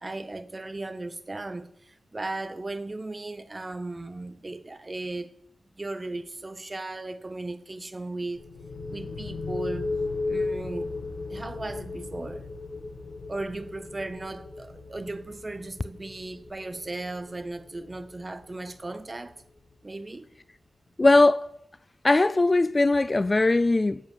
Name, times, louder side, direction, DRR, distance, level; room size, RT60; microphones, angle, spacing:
voice 1, 0.0-5.4 5.8-8.5 8.9-10.0 10.2-10.9 11.3-12.5 13.3-19.4 19.8-20.3, right 2 dB, 30° right, 0.8 m, -36 dB
sound 1, 8.4-19.9, left 3 dB, 90° left, 1.9 m, -36 dB
voice 2, 21.0-21.5 22.0-24.0, left 2 dB, 30° left, 0.3 m, -20 dB
8.2 x 7.7 x 6.7 m
wide cardioid pair, 80°, 0 cm